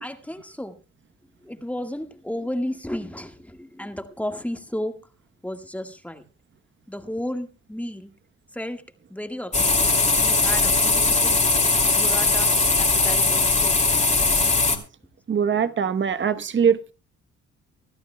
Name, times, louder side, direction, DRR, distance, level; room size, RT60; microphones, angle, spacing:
voice 1, 0.0-0.7 1.4-4.9 5.4-6.2 6.9-8.1 8.5-8.8 9.1-9.7 10.2-11.4 11.9-12.5 12.8-13.8, left 1 dB, 5° left, 1.6 m, -33 dB
sound 1, 9.5-14.8, left 3 dB, 25° left, 2.6 m, -20 dB
voice 2, 15.3-16.9, right 7 dB, 40° right, 1.0 m, -22 dB
25.0 x 12.0 x 2.2 m
cardioid pair, 90°, 30 cm